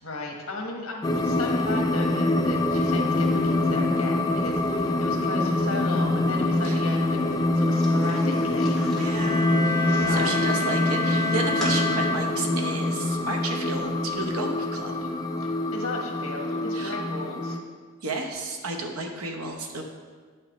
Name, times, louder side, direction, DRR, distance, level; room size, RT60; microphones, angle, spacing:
voice 1, 0.0-9.1 9.9-10.4 15.4-17.6, left 2 dB, 70° left, 0 dB, 1.4 m, -36 dB
sound 1, 1.0-17.6, left 2 dB, 20° left, 0.3 m, -25 dB
sound 2, 7.8-10.4 10.9-11.8 12.2-12.6, left 1 dB, ahead, 1.7 m, -40 dB
sound 3, 9.0-12.9, left 2 dB, 55° right, 1.8 m, -29 dB
voice 2, 9.0-15.1 16.7-17.0 18.0-19.8, right 3 dB, 90° right, 2 dB, 1.0 m, -32 dB
9.2 x 6.6 x 3.1 m, 1.6 s
head